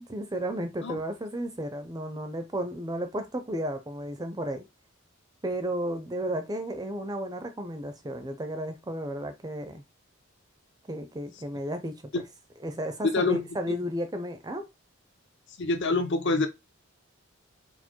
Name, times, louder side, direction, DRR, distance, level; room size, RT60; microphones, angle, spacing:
voice 1, 0.0-4.7 5.4-9.8 10.9-12.0 12.6-14.7, equal, 20° right, 0.5 m, -33 dB
voice 2, 15.6-16.5, left 3 dB, 55° left, 0.8 m, -26 dB
4.4 x 2.1 x 4.4 m
head